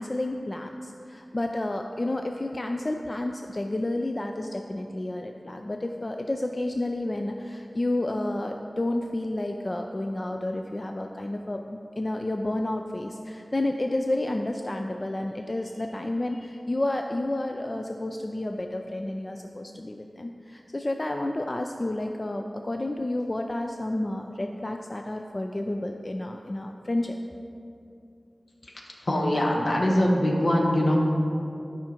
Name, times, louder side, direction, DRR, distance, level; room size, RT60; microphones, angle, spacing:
voice 1, 0.0-27.2, left 1 dB, 40° left, 4 dB, 0.3 m, -30 dB
voice 2, 29.0-31.0, left 1 dB, 70° left, -1 dB, 1.1 m, -22 dB
12.0 x 5.6 x 2.9 m, 2.6 s
wide cardioid pair, 55°, 0 cm